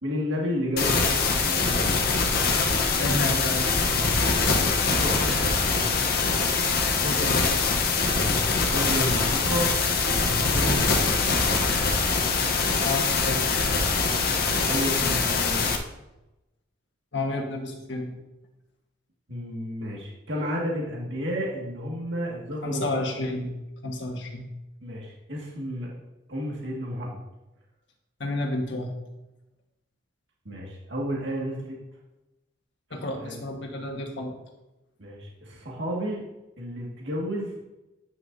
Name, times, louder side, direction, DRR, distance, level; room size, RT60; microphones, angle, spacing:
voice 1, 0.0-2.1 4.4-5.9 8.1-9.8 10.1-11.3 14.1-15.7 19.3-23.0 24.8-25.9 26.3-27.2 30.5-31.8 33.1-33.4 35.0-36.2 36.6-37.5, equal, 65° right, -3 dB, 1.9 m, -32 dB
sound 1, 0.8-15.8, left 4 dB, 50° left, 0.9 m, -23 dB
voice 2, 3.0-3.9 7.0-7.6 12.8-13.6 17.1-18.1 22.6-23.5 23.8-24.5 28.2-28.9 32.9-34.3, left 2 dB, 65° left, 2 dB, 1.4 m, -30 dB
9.7 x 9.4 x 2.7 m, 0.98 s
head